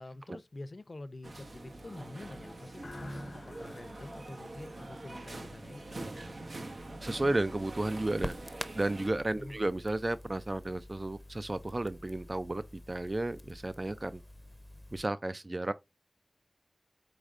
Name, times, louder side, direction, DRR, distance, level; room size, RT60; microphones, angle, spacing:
voice 1, 0.0-6.6 9.4-9.7, left 2 dB, 60° left, 0.5 m, -47 dB
sound 1, 1.2-9.1, right 2 dB, 85° right, 0.8 m, -45 dB
sound 2, 2.8-5.5, left 1 dB, 85° left, 1.0 m, -48 dB
Crackle, 6.8-15.0, left 1 dB, 15° left, 0.6 m, -47 dB
voice 2, 7.0-8.4 8.7-14.2 14.9-15.7, right 2 dB, 45° right, 0.3 m, -33 dB
4.9 x 4.1 x 2.4 m
wide cardioid pair, 65°, 0 cm